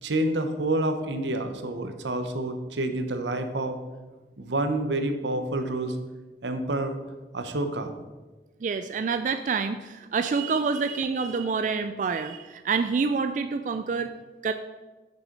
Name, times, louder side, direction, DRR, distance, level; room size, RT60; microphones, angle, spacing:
voice 1, 0.0-3.8 4.4-6.0 6.4-7.0 7.3-7.9, right 1 dB, 90° right, 7 dB, 0.8 m, -28 dB
voice 2, 8.6-14.1 14.4-14.5, right 5 dB, 45° right, 9 dB, 0.3 m, -27 dB
6.7 x 6.2 x 5.2 m, 1.2 s
head